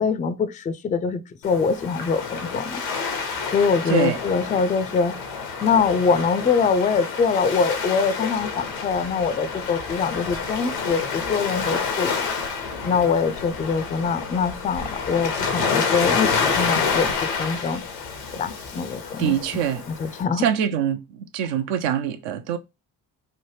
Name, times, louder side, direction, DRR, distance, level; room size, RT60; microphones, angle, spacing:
voice 1, 0.0-2.8 3.1-5.2 5.6-12.1 12.8-17.8 18.3-20.5, left 5 dB, 20° left, 0.3 m, -24 dB
Waves surf, 1.4-20.2, left 5 dB, 85° left, 0.7 m, -28 dB
voice 2, 19.2-19.8 20.4-21.0 21.3-22.6, right 9 dB, 70° right, 0.6 m, -23 dB
3.2 x 2.1 x 3.1 m
hypercardioid pair, 45°, 47 cm